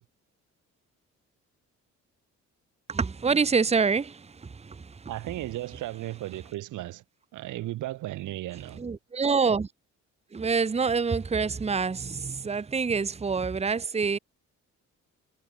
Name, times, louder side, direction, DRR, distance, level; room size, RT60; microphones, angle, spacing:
voice 1, 2.9-5.1 8.8-9.7 10.3-14.2, right 5 dB, 20° right, 1.0 m, -26 dB
voice 2, 5.1-7.0 7.3-8.8, right 16 dB, 85° right, 1.3 m, -35 dB
cardioid pair, 90°, 30 cm